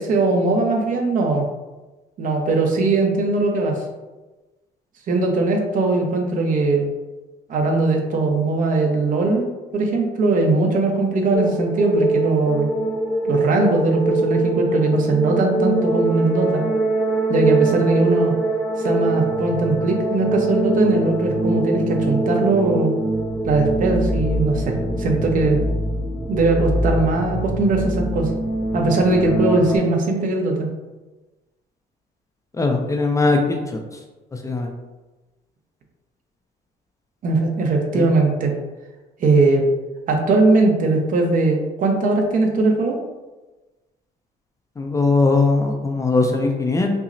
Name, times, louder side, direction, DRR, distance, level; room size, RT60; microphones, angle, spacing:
voice 1, 0.0-1.5 2.2-3.8 5.1-6.9 7.5-12.7 13.2-16.6 17.3-18.3 18.8-22.9 23.4-25.6 26.3-28.3 28.7-30.7 37.2-38.5 39.2-39.6 40.1-43.0, right 3 dB, 50° right, 2 dB, 0.7 m, -20 dB
sound 1, 11.3-29.8, right 1 dB, ahead, 0.8 m, -23 dB
voice 2, 32.6-33.8 34.4-34.7 37.9-38.0 44.8-47.0, left 3 dB, 20° left, 3 dB, 0.4 m, -20 dB
5.6 x 2.0 x 2.6 m, 1.1 s
cardioid pair, 110°, 17 cm